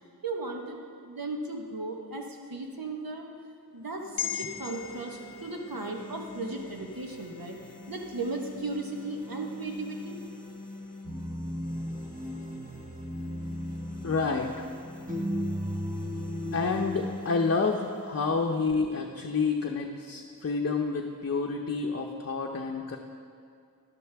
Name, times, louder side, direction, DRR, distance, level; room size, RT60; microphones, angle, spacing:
voice 1, 0.2-0.8 1.0-3.3 3.7-7.6 7.9-10.1, right 2 dB, 70° right, 1 dB, 1.3 m, -36 dB
sound 1, 3.8-19.9, left 2 dB, 20° left, 1.3 m, -46 dB
sound 2, 4.2-8.7 9.1-9.2, left 9 dB, 80° left, 0.6 m, -41 dB
sound 3, 11.0-17.0, equal, 20° right, 1.3 m, -35 dB
voice 2, 14.0-14.7 16.5-23.0, left 4 dB, 45° left, 1 dB, 0.7 m, -29 dB
12.5 x 11.5 x 3.5 m, 2.3 s
wide cardioid pair, 60°, 36 cm